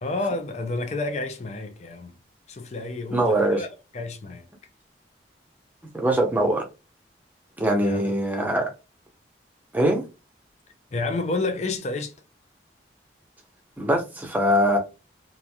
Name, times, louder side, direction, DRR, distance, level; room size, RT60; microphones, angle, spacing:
voice 1, 0.0-2.2 2.5-3.7 3.9-4.5 7.8-8.1 10.9-12.1, left 2 dB, 40° left, 0.5 m, -30 dB
voice 2, 3.1-3.6 5.9-6.6 7.6-8.7 9.7-10.0 13.8-14.8, right 1 dB, 10° right, 0.7 m, -22 dB
3.0 x 2.5 x 2.2 m
head